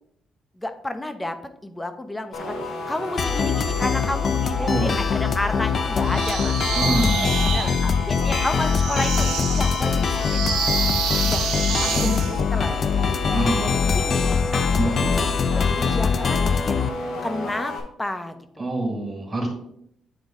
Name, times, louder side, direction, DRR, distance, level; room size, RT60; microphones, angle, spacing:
voice 1, 0.6-1.4 1.6-6.6 7.5-10.5 11.2-11.4 11.9-12.8 13.6-14.7 15.0-16.7 17.2-17.7 18.0-18.7, left 1 dB, 15° left, 9 dB, 0.8 m, -31 dB
sound 1, 2.3-17.8, left 2 dB, 85° left, 1.4 m, -32 dB
sound 2, 3.2-16.9, left 6 dB, 50° left, 0.5 m, -23 dB
voice 2, 4.6-5.2 6.7-8.3 13.3-13.8 14.8-15.1 18.6-19.5, right 2 dB, 30° right, 0 dB, 2.1 m, -27 dB
sound 3, 6.0-12.4, right 6 dB, 90° right, 1.0 m, -28 dB
9.0 x 3.9 x 3.7 m, 0.73 s
cardioid pair, 90°, 0 cm